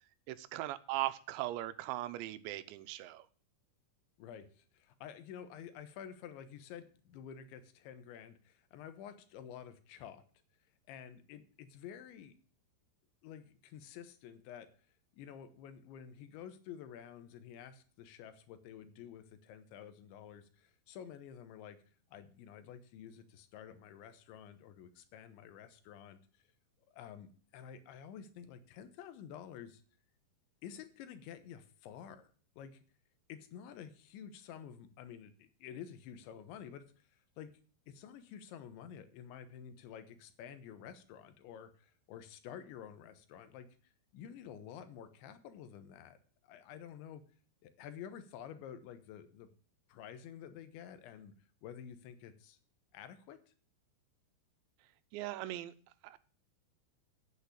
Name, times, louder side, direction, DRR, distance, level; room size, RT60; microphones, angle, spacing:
voice 1, 0.3-3.2 55.1-55.7 56.0-56.2, right 15 dB, 85° right, 13 dB, 3.0 m, -39 dB
voice 2, 4.2-10.2 10.9-12.3 13.2-14.7 15.1-21.8 22.1-26.2 26.9-29.8 30.6-32.3 32.6-32.8 33.3-36.9 37.1-37.5 37.9-47.2 47.6-49.5 49.9-51.3 51.6-52.6 52.9-53.5, left 8 dB, 85° left, 10 dB, 3.4 m, -50 dB
8.6 x 7.7 x 8.3 m, 0.42 s
omnidirectional pair, 5.1 m